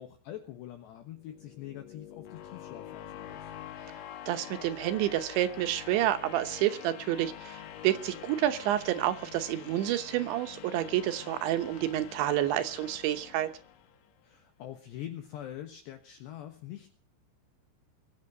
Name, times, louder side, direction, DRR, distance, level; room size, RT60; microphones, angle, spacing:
voice 1, 0.0-3.5 14.2-16.9, left 12 dB, 70° left, 6 dB, 3.1 m, -44 dB
sound 1, 1.1-14.1, left 10 dB, 85° left, 1.9 m, -46 dB
voice 2, 4.3-13.5, right 13 dB, 75° right, 9 dB, 3.1 m, -29 dB
22.5 x 8.6 x 6.7 m, 0.42 s
omnidirectional pair, 5.8 m